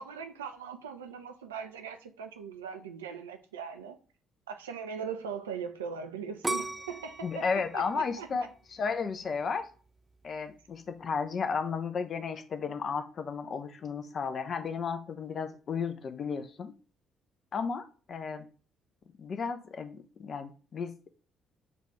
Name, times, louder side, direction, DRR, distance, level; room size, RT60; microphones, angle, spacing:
voice 1, 0.0-4.0 4.5-8.5, right 6 dB, 80° right, 0.4 m, -40 dB
sound 1, 6.4-9.4 9.9-10.4, right 2 dB, 15° right, 0.4 m, -37 dB
voice 2, 7.2-9.7 10.2-16.7 17.5-18.5 19.2-21.1, left 5 dB, 45° left, 0.5 m, -34 dB
6.7 x 2.4 x 3.0 m
figure-of-eight pair, 45°, 0 cm